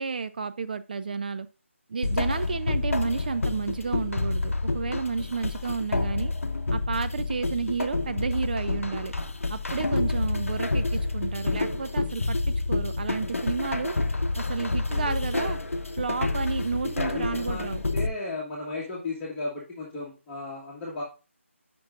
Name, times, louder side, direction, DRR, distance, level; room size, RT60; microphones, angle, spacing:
voice 1, 0.0-1.5 1.9-6.3 6.7-9.1 9.5-13.9 14.4-15.6 16.0-17.8, right 5 dB, 40° right, 11 dB, 0.4 m, -31 dB
sound 1, 2.0-18.1, left 3 dB, 80° left, 0.7 m, -28 dB
voice 2, 14.9-15.2 16.8-21.0, left 2 dB, 10° left, -6 dB, 1.5 m, -35 dB
9.3 x 6.0 x 2.5 m, 0.32 s
figure-of-eight pair, 155°, 7 cm